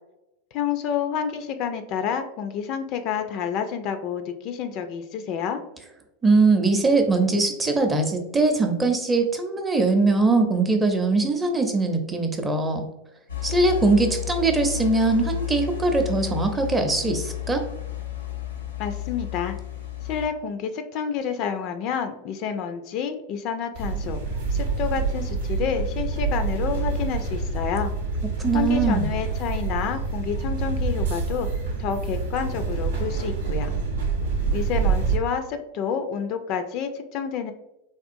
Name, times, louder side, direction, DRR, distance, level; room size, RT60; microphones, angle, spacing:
voice 1, 0.5-5.6 18.8-19.6 20.0-24.2 24.5-27.9 28.5-31.5 31.8-33.7 34.5-37.5, left 7 dB, 50° left, 8 dB, 0.3 m, -29 dB
voice 2, 6.2-12.9 13.4-17.6 28.4-29.1, right 3 dB, 15° right, 5 dB, 0.6 m, -21 dB
sound 1, 13.3-20.3, left 12 dB, 90° left, 0.6 m, -32 dB
sound 2, 23.8-35.2, right 4 dB, 80° right, 0.7 m, -26 dB
3.5 x 2.4 x 2.5 m, 0.88 s
hypercardioid pair, 95°, 0 cm